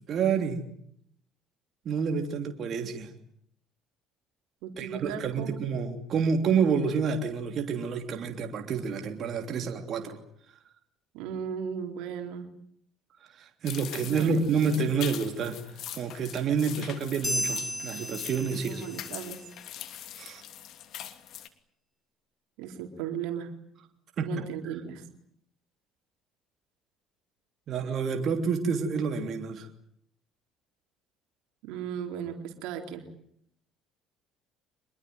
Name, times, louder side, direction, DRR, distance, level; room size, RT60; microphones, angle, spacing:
voice 1, 0.1-0.7 1.8-3.1 4.8-10.2 13.3-15.6 15.9-18.8 20.2-20.4 24.2-24.3 27.7-29.7, right 5 dB, 55° right, 4 dB, 3.2 m, -28 dB
voice 2, 4.6-5.7 11.1-12.5 14.1-14.9 18.5-19.5 22.6-23.5 24.2-25.0 31.6-33.0, right 8 dB, 80° right, 5 dB, 4.1 m, -36 dB
sound 1, 13.6-21.5, left 11 dB, 65° left, 2.9 m, -42 dB
sound 2, 17.2-19.1, equal, 10° left, 4.3 m, -33 dB
25.5 x 21.5 x 9.5 m, 0.69 s
supercardioid pair, 85°, 0 cm